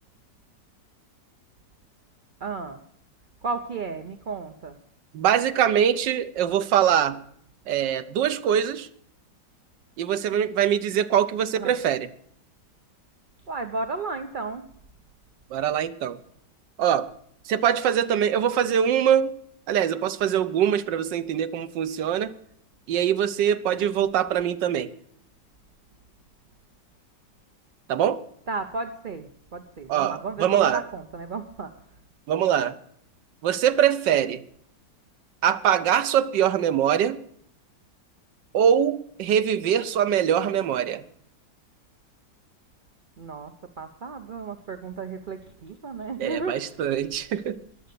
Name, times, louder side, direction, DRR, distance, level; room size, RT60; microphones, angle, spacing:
voice 1, 2.4-2.8 3.4-4.8 11.6-11.8 13.5-14.6 28.5-32.0 43.2-46.9, right 4 dB, 55° right, 0.5 m, -34 dB
voice 2, 5.1-7.2 7.7-8.9 10.0-12.1 15.5-16.2 16.8-17.1 17.5-19.4 19.7-22.3 22.9-24.9 27.9-28.2 29.9-30.8 32.3-32.8 33.4-34.4 35.4-37.2 38.5-41.0 46.2-47.6, right 9 dB, 80° right, 1.5 m, -23 dB
21.0 x 7.8 x 6.8 m
omnidirectional pair, 1.9 m